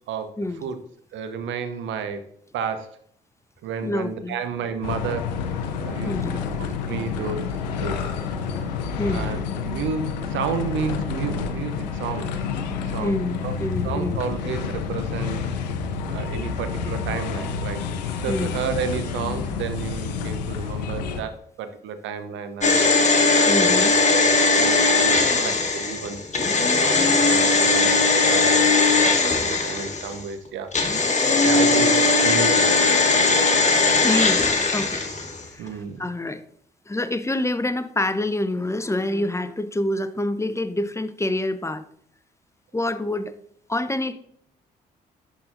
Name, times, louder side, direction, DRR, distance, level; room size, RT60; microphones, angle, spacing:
voice 1, 1.1-2.2 2.5-3.0 3.6-5.3 5.8-6.1 6.6-7.4 7.8-8.0 9.1-12.3 12.9-13.1 13.4-13.6 13.8-15.4 16.1-17.8 18.2-21.3 21.6-22.8 23.3-23.8 24.5-26.2 26.5-31.9 32.2-32.9 35.6-36.1, right 6 dB, 65° right, 9 dB, 0.8 m, -31 dB
voice 2, 3.8-4.4 6.1-6.5 9.0-9.3 13.0-14.2 18.3-18.6 23.5-23.9 34.0-35.0 35.5-36.4 36.9-41.8 42.7-43.3 43.7-44.1, left 1 dB, 15° left, 12 dB, 0.6 m, -27 dB
sound 1, 4.8-21.2, left 5 dB, 85° left, 0.5 m, -29 dB
sound 2, 22.6-30.2 30.7-35.4 35.7-35.8, left 3 dB, 35° left, 1.4 m, -19 dB
11.0 x 4.0 x 2.6 m, 0.65 s
hypercardioid pair, 40°, 21 cm